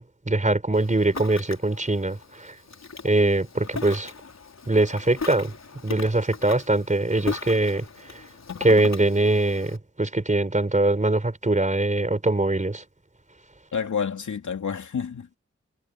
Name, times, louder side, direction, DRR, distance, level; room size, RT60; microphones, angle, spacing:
voice 1, 0.0-2.5 3.0-4.1 4.7-5.5 5.8-7.8 8.6-12.8, right 2 dB, 25° right, 4.4 m, -22 dB
Ocean, 0.7-9.8, left 5 dB, 65° left, 4.1 m, -38 dB
voice 2, 13.7-15.4, left 6 dB, 90° left, 2.8 m, -29 dB
wide cardioid pair, 70°, 29 cm